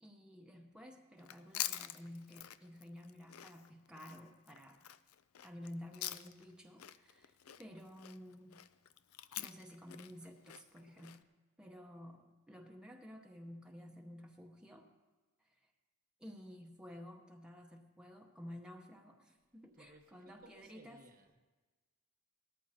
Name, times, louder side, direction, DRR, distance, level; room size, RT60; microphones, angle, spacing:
voice 1, 0.0-4.8 5.4-8.7 9.4-11.3 11.6-15.0 15.4-15.5 16.2-21.0, equal, 5° right, 1 dB, 0.8 m, -52 dB
Chewing mastication, 1.2-6.5 6.8-11.2, left 13 dB, 80° left, 0.5 m, -46 dB
voice 2, 19.7-21.4, right 2 dB, 40° right, 6 dB, 1.1 m, -61 dB
18.5 x 14.0 x 2.8 m, 1.3 s
head